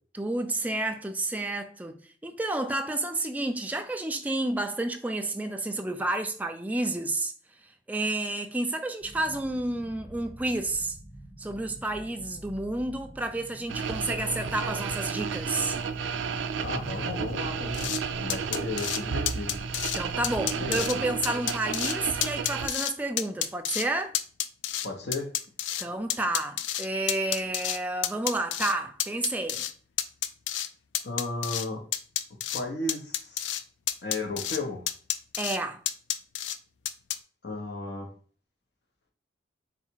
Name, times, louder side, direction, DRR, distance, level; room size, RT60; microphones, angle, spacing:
voice 1, 0.1-7.3 7.9-11.0 11.4-15.7 19.9-24.1 25.8-29.7 35.4-35.8, right 2 dB, 10° right, 0.4 m, -30 dB
sound 1, 9.0-21.2, right 1 dB, 30° left, 1.2 m, -47 dB
sound 2, 13.7-22.7, right 6 dB, 85° right, 0.3 m, -32 dB
voice 2, 16.6-19.6 20.6-21.0 24.8-25.3 31.0-31.8 32.5-33.5 34.0-34.9 37.4-38.1, left 2 dB, 65° left, 0.9 m, -34 dB
sound 3, 17.7-18.0 18.3-19.0 19.3-20.0 20.2-20.9 21.2-21.9 22.2-22.9 23.2-23.8 24.1-25.8 26.1-27.8 28.0-28.7 29.0-29.7 30.0-30.7 30.9-31.7 31.9-32.6 32.9-33.6 33.9-34.6 34.9-35.6 35.8-36.6 36.8-37.2, left 11 dB, 85° left, 0.4 m, -29 dB
4.0 x 2.4 x 4.4 m
head